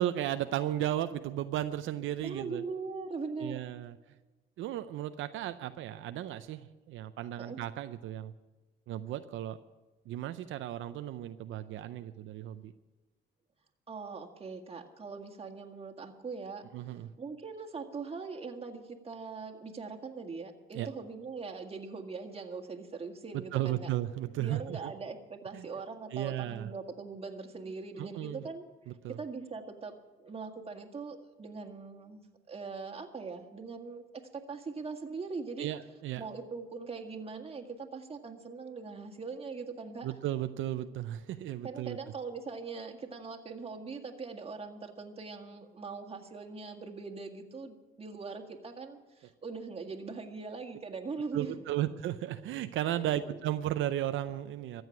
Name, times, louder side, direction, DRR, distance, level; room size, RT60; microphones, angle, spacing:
voice 1, 0.0-2.6 3.4-3.9 4.6-8.3 8.9-9.6 10.1-12.7 16.7-17.1 20.7-20.9 23.5-24.8 25.5-25.6 26.1-26.7 28.0-28.4 29.0-29.2 35.6-36.2 40.0-42.0 51.3-54.8, right 12 dB, 80° right, 10 dB, 0.6 m, -34 dB
voice 2, 2.2-3.6 7.4-7.6 13.9-16.6 17.2-23.9 24.4-28.6 29.1-32.2 32.5-35.7 36.2-40.2 41.6-51.7 52.9-53.4, right 4 dB, 30° right, 4 dB, 1.9 m, -41 dB
14.0 x 8.0 x 9.1 m, 1.2 s
cardioid pair, 90°, 20 cm